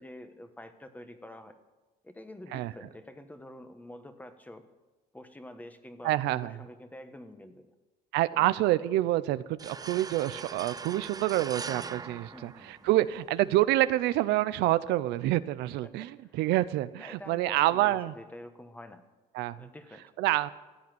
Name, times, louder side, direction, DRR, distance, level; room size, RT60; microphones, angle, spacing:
voice 1, 0.0-1.6 2.0-4.6 5.1-7.7 8.3-8.5 12.3-12.9 15.8-16.4 16.9-19.0 19.6-20.0, left 1 dB, 10° left, 8 dB, 1.4 m, -47 dB
voice 2, 6.0-6.5 8.1-18.1 19.3-19.6 20.2-20.5, right 15 dB, 90° right, 14 dB, 0.6 m, -27 dB
sound 1, 9.6-13.2, right 4 dB, 20° right, 0.6 m, -41 dB
15.0 x 8.6 x 9.4 m, 1.2 s
cardioid pair, 110°, 17 cm